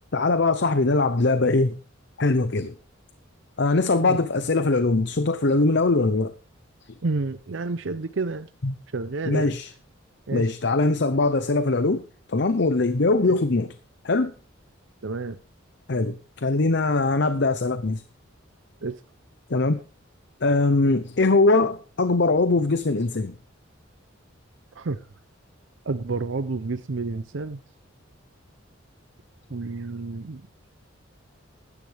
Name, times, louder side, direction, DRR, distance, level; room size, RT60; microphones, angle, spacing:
voice 1, 0.1-1.8 2.2-2.7 3.6-6.3 8.6-8.7 9.3-9.7 10.3-13.7 14.0-14.3 15.9-18.0 19.5-19.8 20.4-23.3, left 3 dB, 60° left, 0.8 m, -22 dB
voice 2, 7.0-8.5 8.9-9.5 10.3-10.5 13.2-13.3 15.0-15.4 18.8-19.0 24.8-25.0 25.9-27.6 29.5-30.4, right 3 dB, 65° right, 0.6 m, -29 dB
16.0 x 12.0 x 3.4 m
head